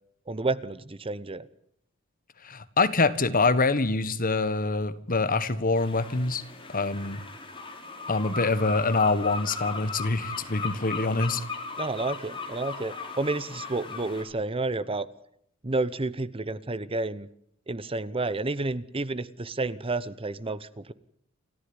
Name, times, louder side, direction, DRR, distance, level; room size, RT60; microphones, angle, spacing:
voice 1, 0.3-1.4 11.8-15.1 15.6-17.3 17.7-20.9, right 2 dB, 25° right, 16 dB, 0.9 m, -30 dB
voice 2, 2.4-6.4 6.7-7.2 8.1-11.4, left 3 dB, 40° left, 13 dB, 1.5 m, -25 dB
sound 1, 5.7-14.2, left 4 dB, 25° left, 4.2 m, -37 dB
29.0 x 14.0 x 9.7 m, 0.70 s
head